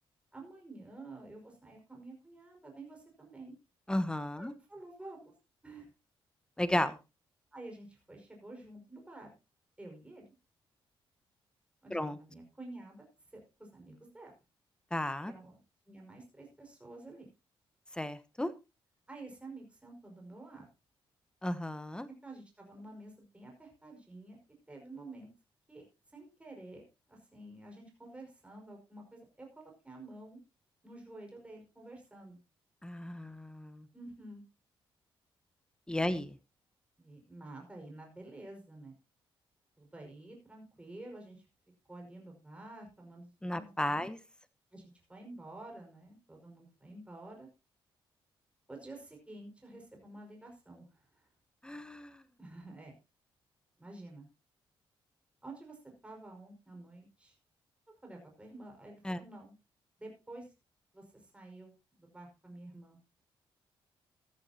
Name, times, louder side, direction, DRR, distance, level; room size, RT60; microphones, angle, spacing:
voice 1, 0.3-3.5 4.4-5.3 5.6-5.9 7.5-9.3 9.8-10.3 11.8-13.0 13.3-14.3 15.2-15.6 15.9-17.3 19.1-20.7 22.2-24.4 24.7-25.3 25.7-25.8 26.1-26.8 27.1-30.4 30.8-32.4 33.9-34.4 36.0-36.1 37.0-38.9 39.8-41.5 41.9-44.0 44.7-47.5 48.7-51.3 52.4-52.9 53.8-54.3 55.4-55.8 56.0-57.4 58.0-59.5 60.0-60.5 60.9-63.2, right 2 dB, 15° right, 5.4 m, -50 dB
voice 2, 3.9-4.5 6.6-7.0 11.9-12.2 14.9-15.3 17.9-18.5 21.4-22.1 32.8-33.9 35.9-36.3 43.4-44.2 51.6-52.2 59.0-59.2, left 1 dB, 10° left, 1.1 m, -34 dB
14.5 x 13.5 x 2.9 m
cardioid pair, 95°, 9 cm